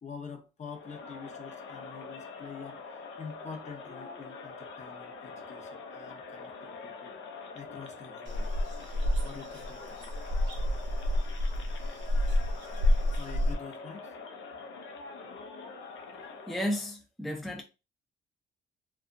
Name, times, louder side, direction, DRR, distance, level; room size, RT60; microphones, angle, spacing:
voice 1, 0.0-2.8 3.2-7.2 7.5-8.5 9.2-10.1 13.2-14.2, left 5 dB, 35° left, 0.7 m, -46 dB
Crowd, 0.6-16.9, left 4 dB, 75° left, 0.6 m, -45 dB
sound 1, 8.3-13.5, left 1 dB, 70° right, 0.7 m, -29 dB
voice 2, 16.5-17.6, equal, ahead, 0.4 m, -33 dB
2.7 x 2.2 x 2.5 m
cardioid pair, 90°, 20 cm